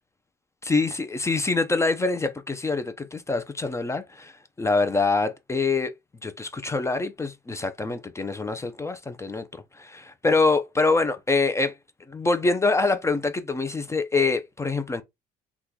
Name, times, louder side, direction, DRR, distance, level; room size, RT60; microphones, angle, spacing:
voice 1, 0.7-5.9 6.2-11.7 12.1-15.0, left 3 dB, 15° left, 0.4 m, -25 dB
3.0 x 2.3 x 3.6 m
cardioid pair, 110°, 17 cm